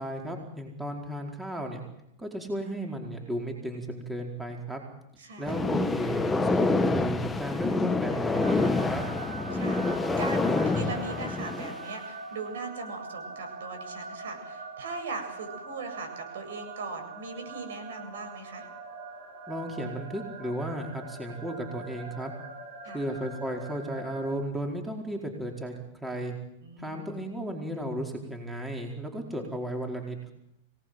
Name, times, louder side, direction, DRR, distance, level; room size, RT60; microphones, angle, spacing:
voice 1, 0.0-1.8 2.2-4.8 5.4-9.0 19.5-22.3 22.9-25.7 26.0-26.3 26.8-30.3, right 1 dB, 5° right, 2 dB, 4.6 m, -34 dB
voice 2, 5.2-5.5 9.5-18.7 22.8-23.0 26.6-27.2, right 3 dB, 80° right, 6 dB, 7.8 m, -39 dB
sound 1, 5.5-11.9, left 3 dB, 10° left, 1.5 m, -27 dB
sound 2, 8.3-24.3, right 3 dB, 65° right, 7.4 m, -42 dB
25.0 x 19.0 x 7.9 m, 0.81 s
hypercardioid pair, 130°, 0 cm